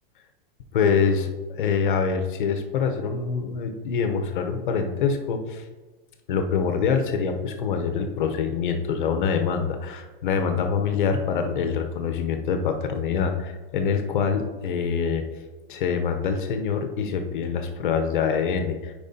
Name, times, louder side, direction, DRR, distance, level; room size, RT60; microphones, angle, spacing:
voice 1, 0.7-5.6 6.3-15.2 15.7-18.9, left 6 dB, 55° left, 6 dB, 0.8 m, -25 dB
8.8 x 4.9 x 2.8 m, 1.3 s
supercardioid pair, 175°, 29 cm